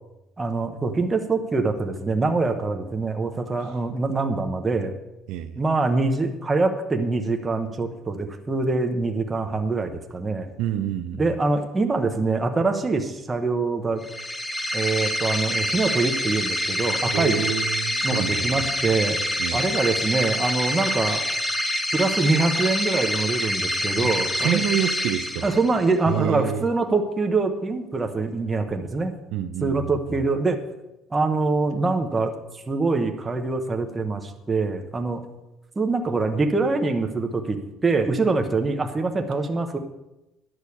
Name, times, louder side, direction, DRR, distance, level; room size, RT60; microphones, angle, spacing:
voice 1, 0.4-4.9 5.6-10.5 11.2-14.0 14.7-17.4 18.0-19.2 19.5-21.2 21.9-24.6 25.4-29.1 29.6-30.6 31.1-32.3 32.7-35.2 35.8-39.8, right 3 dB, 15° right, 4 dB, 1.0 m, -24 dB
voice 2, 10.6-11.2 17.1-18.7 19.4-19.6 24.0-24.1 24.4-25.5 26.1-26.7 29.3-29.9, right 11 dB, 70° right, 9 dB, 0.7 m, -27 dB
sound 1, 14.0-25.9, left 1 dB, 10° left, 0.7 m, -26 dB
10.5 x 6.3 x 8.4 m, 0.95 s
cardioid pair, 155°, 0 cm